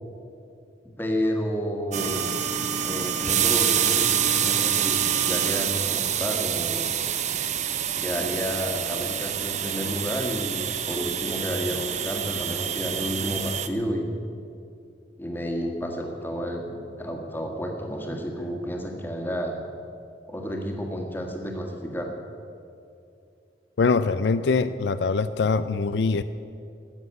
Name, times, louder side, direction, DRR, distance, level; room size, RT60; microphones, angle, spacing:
voice 1, 1.0-2.4 2.8-6.9 8.0-14.2 15.2-19.5 20.3-22.1, equal, 10° left, 2 dB, 1.6 m, -31 dB
sound 1, 1.9-13.7, right 9 dB, 40° right, 0.7 m, -26 dB
voice 2, 23.8-26.2, left 4 dB, 75° left, 12 dB, 0.4 m, -23 dB
13.0 x 7.9 x 9.5 m, 2.6 s
head